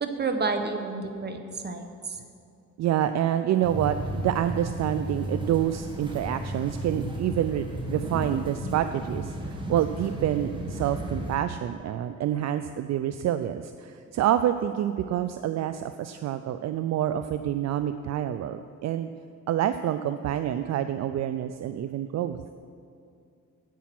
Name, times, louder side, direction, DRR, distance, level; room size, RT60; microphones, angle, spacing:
voice 1, 0.0-2.2, right 4 dB, 35° right, 7 dB, 1.1 m, -30 dB
voice 2, 2.8-19.1 19.5-22.4, right 11 dB, 60° right, 11 dB, 0.5 m, -27 dB
sound 1, 3.6-11.4, right 1 dB, 15° right, 1.7 m, -34 dB
9.2 x 8.3 x 5.9 m, 2.5 s
cardioid pair, 90°, 30 cm